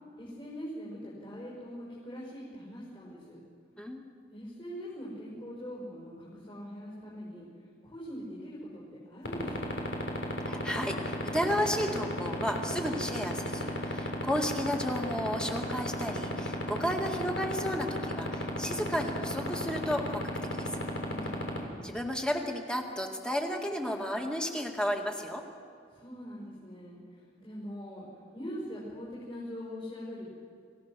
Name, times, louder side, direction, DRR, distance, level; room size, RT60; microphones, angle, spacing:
voice 1, 0.1-3.4 4.3-7.5 7.8-9.9 21.0-21.5 25.9-28.1 28.3-30.3, equal, 30° left, -7 dB, 5.7 m, -42 dB
sound 1, 9.2-21.6, left 1 dB, 80° left, 3.8 m, -31 dB
voice 2, 10.4-20.2 20.5-20.7 21.2-21.3 21.8-25.4, equal, 5° left, 2 dB, 2.1 m, -33 dB
26.5 x 17.0 x 6.4 m, 2.3 s
head